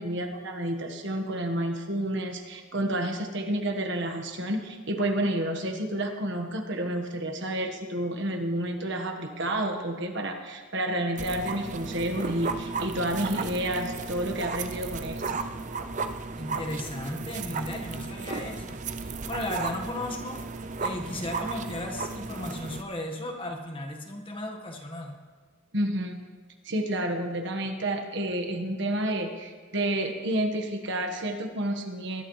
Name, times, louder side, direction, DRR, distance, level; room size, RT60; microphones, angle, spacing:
voice 1, 0.0-15.2 25.7-26.2 26.6-32.2, right 1 dB, 60° right, 4 dB, 1.4 m, -30 dB
sound 1, 11.2-22.8, right 4 dB, 35° right, 0.6 m, -34 dB
voice 2, 16.4-20.4 20.8-25.2, left 1 dB, 25° left, 2 dB, 1.5 m, -35 dB
21.0 x 12.5 x 3.2 m, 1.5 s
head